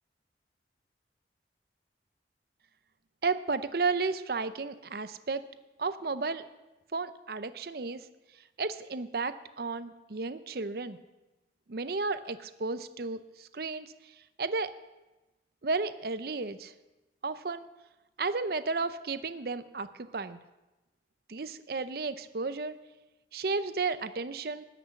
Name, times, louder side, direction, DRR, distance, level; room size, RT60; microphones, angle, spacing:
voice 1, 3.2-5.5 5.8-6.5 6.9-8.1 8.6-11.0 11.7-14.7 15.6-16.7 17.2-17.6 18.2-20.4 21.3-22.8 23.3-24.6, right 4 dB, 55° right, 12 dB, 0.6 m, -33 dB
14.0 x 6.1 x 9.5 m, 1.0 s
head